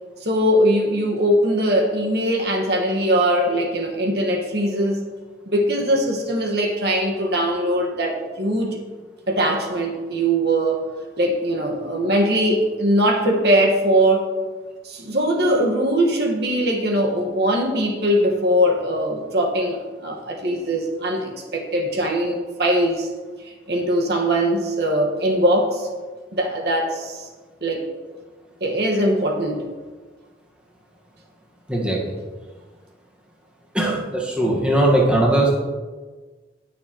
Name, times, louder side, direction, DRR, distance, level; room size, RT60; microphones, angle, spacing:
voice 1, 0.2-5.1 5.5-8.8 9.3-10.8 11.2-14.3 14.8-23.1 23.7-25.9 26.3-27.3 27.6-27.8 28.6-29.6, right 1 dB, 60° right, 0 dB, 1.5 m, -21 dB
voice 2, 31.7-32.1 33.7-35.5, right 1 dB, 5° right, -4 dB, 1.4 m, -19 dB
18.5 x 6.6 x 3.0 m, 1.4 s
head